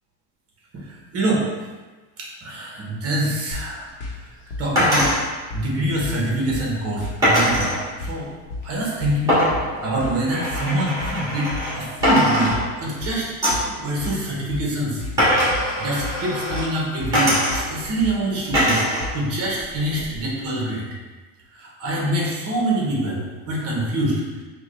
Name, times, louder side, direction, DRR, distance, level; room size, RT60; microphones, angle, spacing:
voice 1, 1.1-1.5 2.2-3.8 4.6-5.3 5.5-7.8 8.1-8.3 8.6-9.4 9.8-12.5 12.8-15.0 15.8-18.8 19.1-20.9 21.5-24.4, right 1 dB, 30° right, -3 dB, 0.8 m, -25 dB
sound 1, 3.5-19.4, left 3 dB, 75° left, 0.9 m, -34 dB
sound 2, 4.8-5.2 7.2-7.8 9.3-11.8 12.0-13.0 13.4-13.7 15.2-16.7 17.1-17.9 18.5-19.1 19.4-20.2, equal, 5° right, 1.5 m, -21 dB
4.5 x 2.2 x 3.1 m, 1.3 s
cardioid pair, 160°, 45 cm